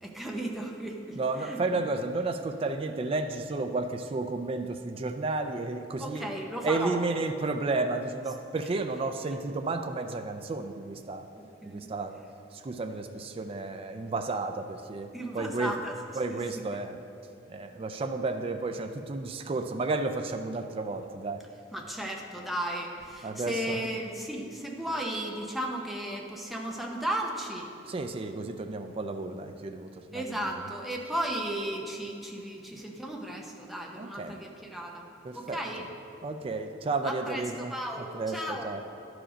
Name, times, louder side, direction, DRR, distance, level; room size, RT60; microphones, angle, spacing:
voice 1, 0.0-1.8 6.0-7.0 11.6-11.9 15.1-15.9 16.3-16.6 21.7-27.7 30.1-35.1 35.3-35.9 37.0-38.7, right 1 dB, ahead, -1 dB, 0.8 m, -35 dB
voice 2, 1.2-6.3 6.6-11.3 11.6-12.2 12.5-15.7 16.1-17.0 17.5-21.4 23.2-23.8 27.9-30.4 34.0-34.4 35.2-35.6 36.2-37.7 38.0-38.8, right 3 dB, 30° right, 6 dB, 0.4 m, -32 dB
11.0 x 4.9 x 5.1 m, 2.6 s
head